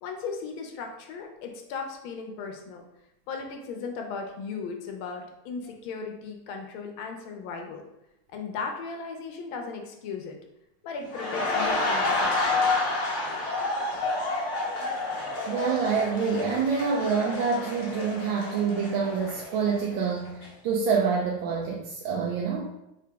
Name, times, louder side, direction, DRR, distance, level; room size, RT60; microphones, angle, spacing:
voice 1, 0.0-2.8 3.3-7.8 8.3-10.3 10.8-12.7, left 4 dB, 80° left, 3 dB, 1.4 m, -36 dB
sound 1, 11.1-19.9 20.3-20.5, left 2 dB, 55° left, 0.8 m, -29 dB
voice 2, 15.5-22.7, right 5 dB, 75° right, -1 dB, 1.3 m, -27 dB
3.8 x 3.3 x 3.4 m, 0.87 s
omnidirectional pair, 2.3 m